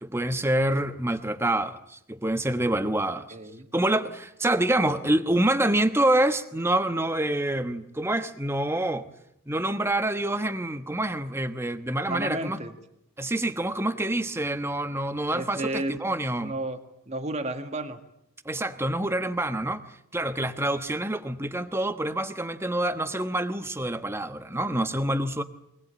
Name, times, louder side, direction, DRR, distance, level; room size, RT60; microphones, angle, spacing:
voice 1, 0.0-3.3 3.7-9.1 9.5-12.6 13.2-16.5 18.4-19.8 20.1-25.4, right 1 dB, 10° right, 9 dB, 1.1 m, -26 dB
voice 2, 3.3-3.7 12.1-12.8 15.3-16.0 16.4-16.8 17.1-18.0, right 1 dB, 30° right, 7 dB, 1.9 m, -32 dB
24.0 x 19.5 x 8.9 m, 0.79 s
head